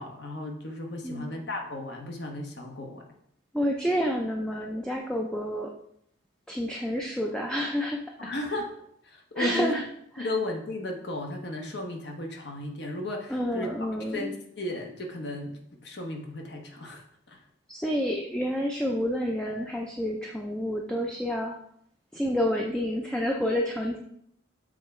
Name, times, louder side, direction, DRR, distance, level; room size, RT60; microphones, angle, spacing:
voice 1, 0.0-3.1 8.2-8.8 9.0-9.8 10.2-13.7 14.0-17.0 17.3-17.4, left 1 dB, 60° left, 2 dB, 1.0 m, -35 dB
voice 2, 3.5-5.7 6.5-8.3 9.4-9.8 10.2-10.3 13.3-14.3 17.7-21.5 22.1-24.0, equal, 5° left, 0 dB, 0.4 m, -29 dB
7.3 x 3.4 x 4.3 m, 0.70 s
head